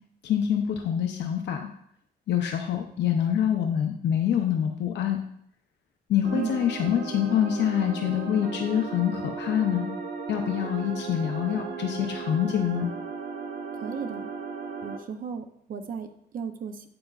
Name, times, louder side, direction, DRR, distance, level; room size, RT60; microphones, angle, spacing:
voice 1, 0.2-1.7 2.3-5.2 6.1-9.9 10.3-12.9, left 9 dB, 85° left, 4 dB, 0.6 m, -26 dB
sound 1, 6.2-15.0, right 5 dB, 75° right, 0.9 m, -36 dB
voice 2, 13.8-14.3 14.8-16.9, right 6 dB, 55° right, 7 dB, 0.5 m, -35 dB
7.8 x 7.6 x 2.4 m, 0.69 s
wide cardioid pair, 175°, 18 cm